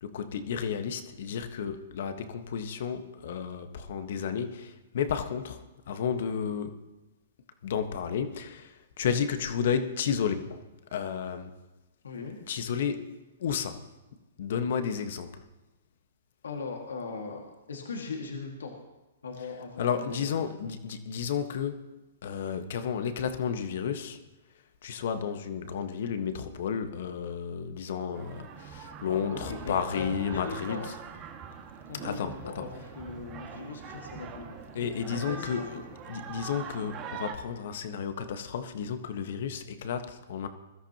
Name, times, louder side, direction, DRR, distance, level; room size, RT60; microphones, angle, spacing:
voice 1, 0.0-5.6 5.9-6.7 7.6-10.6 10.9-11.5 12.5-13.1 13.4-13.8 14.4-15.4 19.8-21.9 22.2-24.2 24.8-30.9 31.9-32.6 34.7-35.7 36.1-40.5, left 7 dB, 65° left, 8 dB, 1.4 m, -32 dB
voice 2, 12.0-12.4 16.4-17.4 17.7-18.8 19.2-20.6 29.0-30.9 31.9-34.6 35.3-35.9, left 4 dB, 85° left, 1 dB, 2.0 m, -39 dB
sound 1, 28.1-37.3, right 6 dB, 30° right, 1.9 m, -43 dB
22.0 x 13.0 x 3.0 m, 1.1 s
hypercardioid pair, 130°, 0 cm